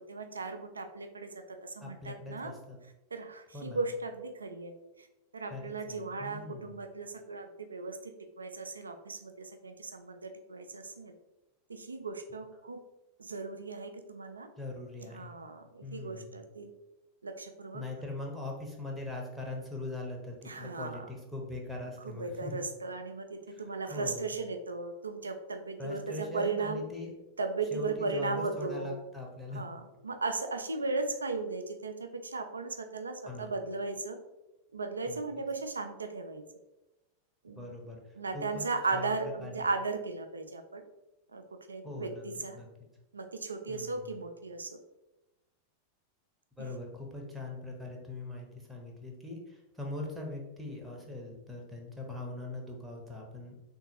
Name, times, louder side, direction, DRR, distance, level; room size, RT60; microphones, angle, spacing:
voice 1, 0.0-2.5 3.1-4.7 5.0-5.1 5.3-11.1 11.7-12.8 13.2-14.5 15.0-16.7 17.2-17.8 20.4-21.1 22.0-26.8 27.4-29.0 29.5-34.2 34.7-36.4 37.4-37.8 38.2-40.8 41.3-41.4 41.7-42.6 43.1-44.8 46.6-46.7, right 3 dB, 75° right, 7 dB, 0.3 m, -36 dB
voice 2, 1.8-2.8 3.5-3.8 5.5-6.8 14.6-15.4 15.8-16.4 17.7-22.6 23.5-23.6 23.9-24.3 25.8-27.1 27.7-29.7 33.2-33.5 35.1-35.2 37.6-38.0 38.3-38.7 38.9-39.1 39.4-39.7 41.8-42.2 42.5-42.9 43.7-44.1 46.6-53.6, left 2 dB, 5° right, -1 dB, 0.7 m, -41 dB
3.7 x 2.6 x 2.8 m, 0.98 s
figure-of-eight pair, 90°, 0 cm